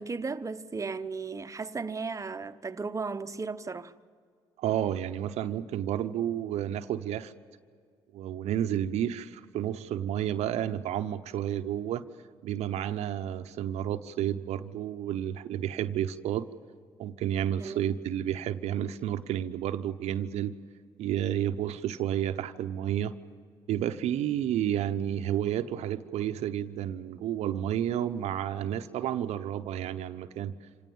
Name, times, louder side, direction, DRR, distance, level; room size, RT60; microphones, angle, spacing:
voice 1, 0.0-3.9 17.6-18.0, right 4 dB, 30° right, 1.0 m, -35 dB
voice 2, 4.6-7.3 8.1-12.0 12.4-16.5 17.0-20.6 21.0-23.1 23.7-30.5, right 10 dB, 70° right, 0.8 m, -31 dB
26.0 x 18.0 x 7.2 m
supercardioid pair, 60°, 11 cm